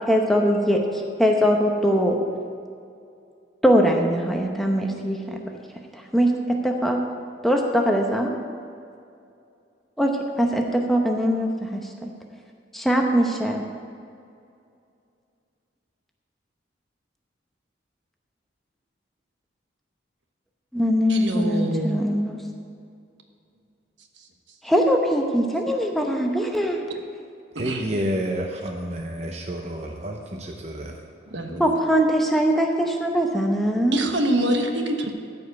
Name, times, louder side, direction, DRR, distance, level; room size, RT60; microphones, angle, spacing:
voice 1, 0.1-2.2 3.6-5.4 5.9-7.0 7.4-8.3 10.0-12.1 12.7-13.6 20.7-22.4 24.6-26.8 31.6-34.0, equal, ahead, 1 dB, 0.8 m, -22 dB
voice 2, 21.1-22.0 27.5-27.9 31.3-31.6 33.9-35.1, right 1 dB, 75° right, 4 dB, 1.2 m, -25 dB
voice 3, 27.6-31.0, equal, 35° right, 1 dB, 0.7 m, -29 dB
14.0 x 5.4 x 8.1 m, 2.4 s
head